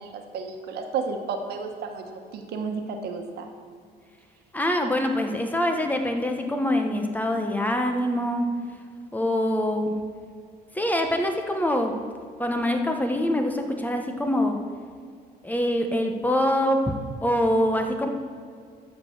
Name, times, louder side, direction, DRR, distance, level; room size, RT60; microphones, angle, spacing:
voice 1, 0.0-3.5, right 5 dB, 70° right, 4 dB, 1.3 m, -32 dB
voice 2, 4.5-8.5 9.1-10.0 10.7-12.0 12.4-14.6 15.4-16.9 17.2-18.1, left 1 dB, 10° left, 4 dB, 1.0 m, -24 dB
13.0 x 5.2 x 7.2 m, 2.2 s
cardioid pair, 110°, 17 cm